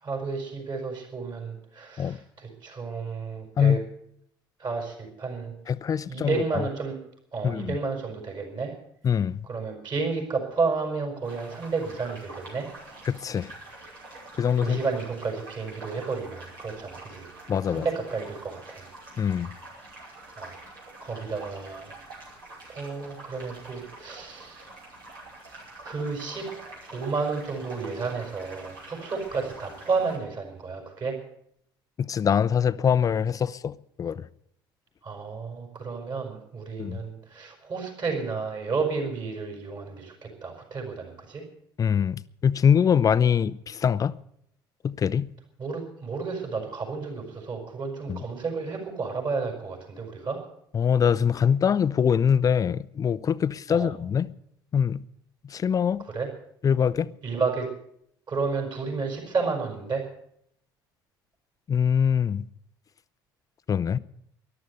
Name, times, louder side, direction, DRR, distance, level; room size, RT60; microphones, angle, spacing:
voice 1, 0.0-3.8 4.6-5.5 6.1-7.0 7.3-8.7 9.5-12.7 14.6-17.3 17.7-18.9 20.4-20.5 21.0-22.0 22.7-24.7 25.8-26.5 26.9-31.2 35.0-41.4 45.6-50.4 53.7-53.9 56.1-56.3 57.2-57.7 58.3-60.0, right 4 dB, 35° right, 5.6 m, -31 dB
voice 2, 5.7-6.6 7.4-7.8 9.0-9.4 13.1-13.5 14.4-14.8 17.5-17.8 19.2-19.5 32.0-34.2 36.8-37.0 41.8-44.2 44.8-45.3 48.1-48.2 50.7-54.3 54.7-55.0 55.4-56.0 56.6-57.1 61.7-62.4 63.7-64.0, left 7 dB, 30° left, 0.6 m, -23 dB
sound 1, 11.2-30.2, right 2 dB, 75° right, 5.4 m, -46 dB
14.0 x 12.0 x 8.2 m
figure-of-eight pair, 60°, 12 cm